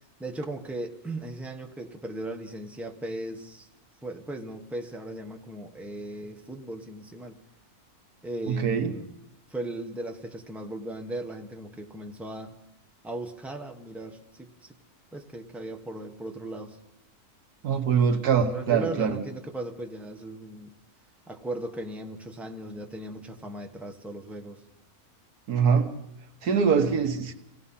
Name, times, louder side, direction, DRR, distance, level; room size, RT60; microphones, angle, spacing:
voice 1, 0.2-3.7 4.0-7.4 8.2-9.1 9.5-12.5 13.0-14.8 15.1-16.8 18.5-20.7 21.3-24.6, right 1 dB, ahead, 4 dB, 1.2 m, -37 dB
voice 2, 8.5-8.9 17.6-19.2 25.5-25.9 26.4-27.3, right 6 dB, 85° right, 7 dB, 1.8 m, -23 dB
26.5 x 17.0 x 5.7 m, 0.84 s
omnidirectional pair, 1.6 m